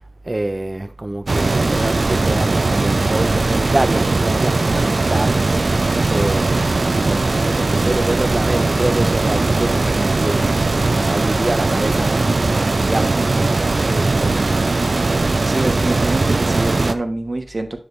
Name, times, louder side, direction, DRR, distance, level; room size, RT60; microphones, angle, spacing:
voice 1, 0.2-5.5 6.1-14.6, right 2 dB, 40° right, 0.5 m, -26 dB
sound 1, 1.3-16.9, right 3 dB, 85° right, 0.6 m, -19 dB
voice 2, 15.4-17.8, right 2 dB, 60° right, 1.3 m, -25 dB
10.0 x 5.5 x 3.2 m
wide cardioid pair, 60°, 0 cm